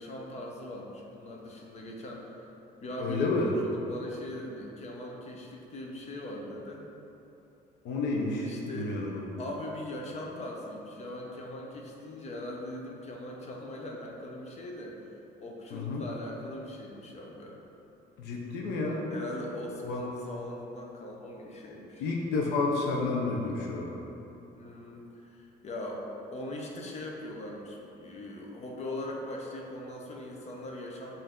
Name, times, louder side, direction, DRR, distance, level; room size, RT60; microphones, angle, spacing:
voice 1, 0.0-2.4 2.8-6.9 8.5-9.1 9.4-15.1 15.4-17.6 19.1-22.1 24.6-31.1, left 1 dB, 40° left, -1 dB, 0.7 m, -40 dB
voice 2, 3.0-3.5 7.8-9.3 15.7-16.0 18.2-19.1 19.8-20.0 22.0-23.9, left 3 dB, 85° left, -2 dB, 0.7 m, -30 dB
5.4 x 2.7 x 3.6 m, 3.0 s
cardioid pair, 110°, 17 cm